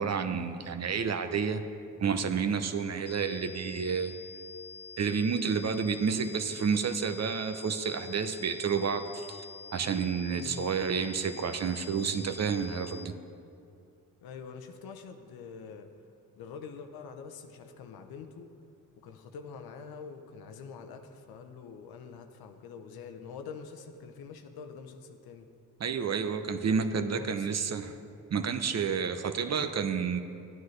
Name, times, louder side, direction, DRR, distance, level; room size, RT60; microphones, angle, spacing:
voice 1, 0.0-1.6 2.0-4.1 5.0-9.5 9.7-13.1 25.8-27.9 28.3-30.2, right 6 dB, 45° right, 8 dB, 0.7 m, -30 dB
sound 1, 3.1-13.1, left 4 dB, 20° left, 0.4 m, -47 dB
voice 2, 10.4-10.7 14.2-15.9 16.4-18.5 19.0-25.5 27.1-27.6, left 5 dB, 85° left, 6 dB, 0.7 m, -45 dB
12.0 x 9.3 x 3.2 m, 2.4 s
supercardioid pair, 50°, 36 cm